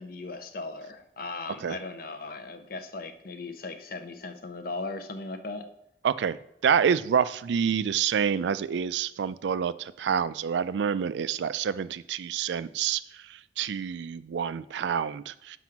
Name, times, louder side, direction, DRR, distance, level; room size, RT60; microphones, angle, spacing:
voice 1, 0.0-5.7, left 3 dB, 55° left, 8 dB, 0.6 m, -38 dB
voice 2, 6.0-6.4 6.6-15.6, right 7 dB, 85° right, 16 dB, 0.3 m, -27 dB
6.1 x 4.9 x 5.8 m, 0.79 s
head